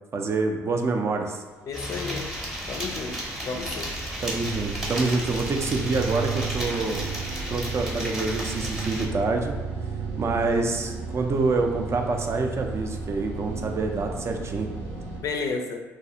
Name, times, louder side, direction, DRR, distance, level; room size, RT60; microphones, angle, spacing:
voice 1, 0.1-1.4 4.2-7.1 7.5-9.5 10.2-14.7, right 3 dB, 40° right, 3 dB, 0.4 m, -26 dB
voice 2, 1.7-2.2 2.7-3.9 15.2-15.8, left 4 dB, 50° left, 4 dB, 0.4 m, -32 dB
rain with near drops, 1.7-9.1, equal, ahead, 0.8 m, -33 dB
sound 1, 2.2-15.2, right 5 dB, 75° right, 0.6 m, -34 dB
2.4 x 2.3 x 2.7 m, 1.2 s
hypercardioid pair, 60°, 7 cm